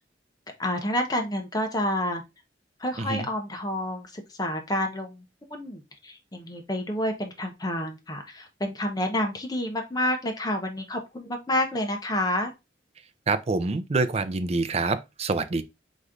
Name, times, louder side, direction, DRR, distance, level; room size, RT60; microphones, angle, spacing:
voice 1, 0.6-2.2 2.8-5.2 5.5-12.5, left 1 dB, 20° left, 0.9 m, -29 dB
voice 2, 13.3-15.6, right 3 dB, 35° right, 0.5 m, -26 dB
3.9 x 3.1 x 3.6 m
head